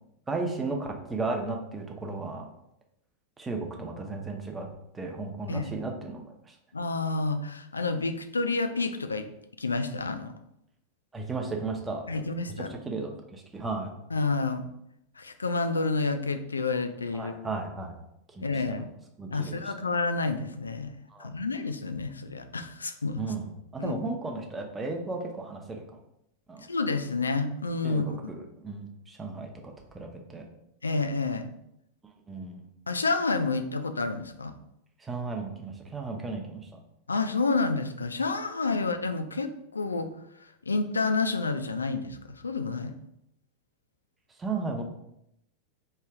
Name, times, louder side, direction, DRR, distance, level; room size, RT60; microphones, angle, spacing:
voice 1, 0.3-2.5 3.4-4.7 4.9-6.6 11.1-12.0 12.7-13.9 17.1-17.9 18.3-18.5 19.2-19.6 21.1-21.3 23.2-25.8 26.5-26.7 27.8-29.5 29.9-30.4 32.3-32.6 35.0-36.7 38.7-38.8 44.4-44.8, right 3 dB, 15° right, 2 dB, 0.7 m, -34 dB
voice 2, 6.7-9.3 9.6-10.3 12.1-12.7 14.1-14.7 15.2-17.4 18.4-18.9 19.3-23.2 23.8-23.9 26.7-28.2 30.8-31.5 32.9-34.5 37.1-40.1 40.6-42.9, left 3 dB, 75° left, 8 dB, 0.3 m, -29 dB
4.4 x 3.2 x 2.4 m, 0.78 s
figure-of-eight pair, 90°, 0 cm